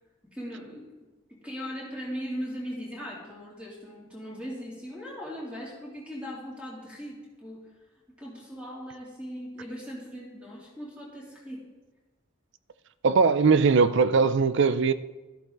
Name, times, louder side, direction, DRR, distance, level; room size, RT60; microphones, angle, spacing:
voice 1, 0.3-0.9 1.3-7.6 8.2-11.6, equal, 5° right, 3.0 m, -39 dB
voice 2, 13.0-14.9, right 5 dB, 55° right, 0.5 m, -20 dB
13.0 x 11.5 x 4.0 m
head